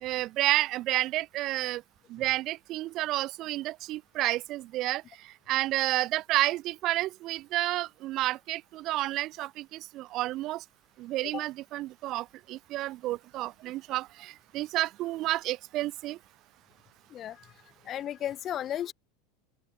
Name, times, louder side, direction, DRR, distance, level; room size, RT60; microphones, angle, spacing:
voice 1, 0.0-1.8 2.1-10.6 11.0-16.2, right 16 dB, 30° right, 1.1 m, -30 dB
voice 2, 17.1-17.5 17.9-18.9, left 11 dB, 25° left, 0.3 m, -34 dB
open air
supercardioid pair, 180°, 0 cm